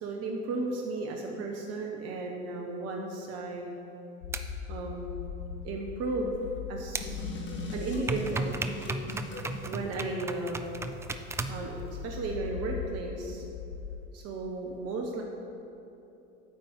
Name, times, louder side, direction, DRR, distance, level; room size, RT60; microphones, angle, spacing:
voice 1, 0.0-3.7 4.7-5.3 5.6-6.4 6.7-7.2 7.7-8.6 9.6-10.7 11.5-13.4 14.1-15.2, right 2 dB, 45° right, 1 dB, 1.2 m, -34 dB
sound 1, 4.2-14.1, left 6 dB, 80° left, 0.7 m, -41 dB
sound 2, 4.3-4.4 6.9-7.0 8.1-11.6, right 3 dB, 10° right, 0.3 m, -34 dB
sound 3, 7.0-9.6, left 2 dB, 30° left, 1.6 m, -40 dB
9.1 x 5.3 x 8.0 m, 2.9 s
hypercardioid pair, 75°, 36 cm